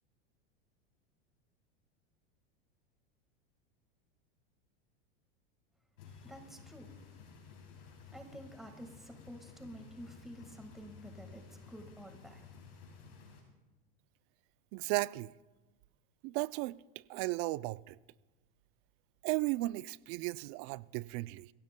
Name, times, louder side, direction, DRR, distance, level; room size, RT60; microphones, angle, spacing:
sound 1, 6.0-13.4, left 5 dB, 70° left, 5.5 m, -54 dB
voice 1, 6.2-6.9 8.1-11.4 11.7-12.4, equal, ahead, 1.6 m, -50 dB
voice 2, 14.7-15.3 16.2-16.8 17.1-18.0 19.2-21.5, right 21 dB, 50° right, 0.4 m, -35 dB
25.5 x 16.0 x 2.2 m
hypercardioid pair, 110°, 30 cm